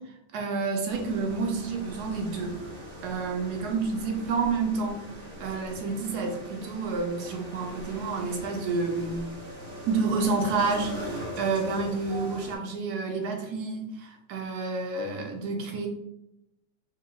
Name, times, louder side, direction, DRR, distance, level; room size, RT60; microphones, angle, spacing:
voice 1, 0.3-2.6 3.0-5.0 5.4-9.2 9.9-15.9, right 4 dB, 65° right, 2 dB, 1.1 m, -29 dB
sound 1, 0.9-12.6, equal, 40° right, 0.9 m, -41 dB
4.2 x 2.4 x 3.8 m, 0.87 s
omnidirectional pair, 2.0 m